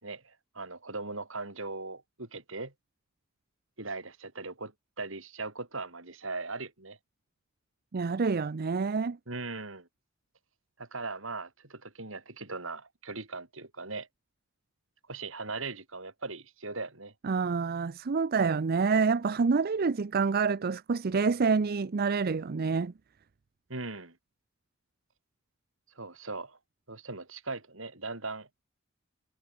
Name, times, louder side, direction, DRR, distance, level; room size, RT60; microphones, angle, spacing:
voice 1, 0.0-2.7 3.8-7.0 9.3-9.9 10.8-14.1 15.1-17.1 23.7-24.2 25.9-26.6 26.9-28.5, right 3 dB, 70° right, 4.3 m, -39 dB
voice 2, 7.9-9.2 17.2-22.9, right 5 dB, 50° right, 0.5 m, -27 dB
head